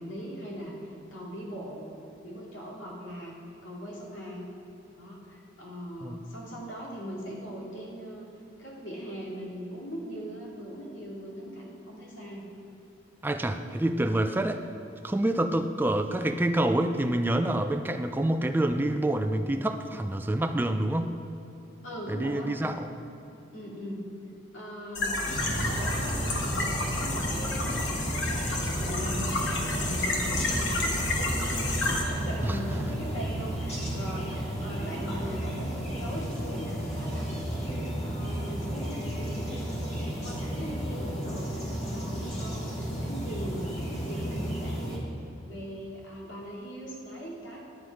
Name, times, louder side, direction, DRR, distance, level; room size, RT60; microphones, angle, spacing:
voice 1, 0.0-3.3 3.6-4.5 4.8-8.3 8.6-12.5 21.8-22.9 23.5-24.0 24.5-28.0 28.3-31.1 31.3-45.1 45.4-47.6, equal, 85° left, -4 dB, 2.3 m, -40 dB
voice 2, 13.2-14.6 15.0-21.2 22.1-22.9 32.4-32.6 42.4-42.7, right 1 dB, 10° right, 7 dB, 0.4 m, -27 dB
sound 1, 24.9-32.0, left 2 dB, 65° left, 1.3 m, -30 dB
sound 2, 25.2-45.0, equal, 35° left, 1.6 m, -33 dB
10.5 x 8.0 x 4.7 m, 2.8 s
head